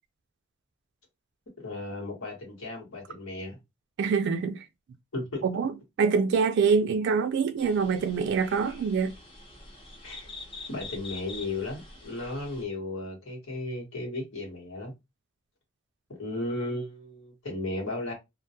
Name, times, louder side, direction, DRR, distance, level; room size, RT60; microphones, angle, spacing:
voice 1, 1.6-3.6 5.1-5.4 10.0-10.3 10.7-14.9 16.2-18.1, left 2 dB, 85° left, 1.2 m, -35 dB
voice 2, 4.0-4.7 5.4-9.1, right 5 dB, 60° right, 0.3 m, -25 dB
sound 1, 7.6-12.6, left 3 dB, 25° left, 0.6 m, -45 dB
2.2 x 2.2 x 2.7 m
head